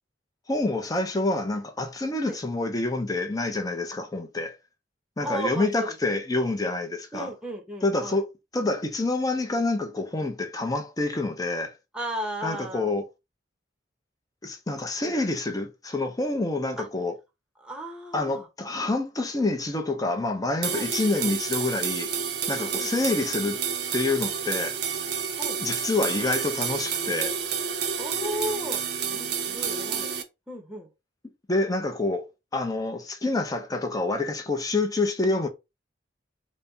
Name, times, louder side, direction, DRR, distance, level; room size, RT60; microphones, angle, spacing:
voice 1, 0.5-4.6 5.2-7.3 7.8-8.3 8.5-11.7 12.4-13.1 14.4-17.1 18.1-22.1 22.5-23.6 23.9-24.8 25.6-27.4 31.5-32.3 32.5-35.5, left 2 dB, 20° left, 0.7 m, -27 dB
voice 2, 5.2-6.2 7.1-8.2 11.9-12.9 15.0-15.1 16.8-16.9 17.6-18.5 20.7-20.9 21.2-21.3 22.7-22.9 25.4-25.6 28.0-30.1 30.5-30.9, right 1 dB, 5° right, 1.0 m, -35 dB
sound 1, 20.6-30.2, right 7 dB, 65° right, 0.7 m, -30 dB
4.1 x 2.2 x 3.8 m
head